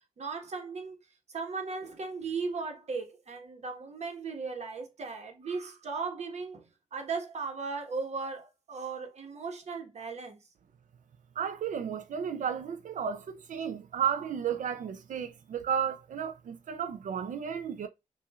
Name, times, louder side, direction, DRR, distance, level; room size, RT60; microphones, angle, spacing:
voice 1, 0.2-1.0 1.3-6.6 6.9-10.4, right 4 dB, 55° right, 1.2 m, -37 dB
voice 2, 11.4-17.9, right 8 dB, 70° right, 0.5 m, -33 dB
5.5 x 2.6 x 2.3 m
wide cardioid pair, 115°, 14 cm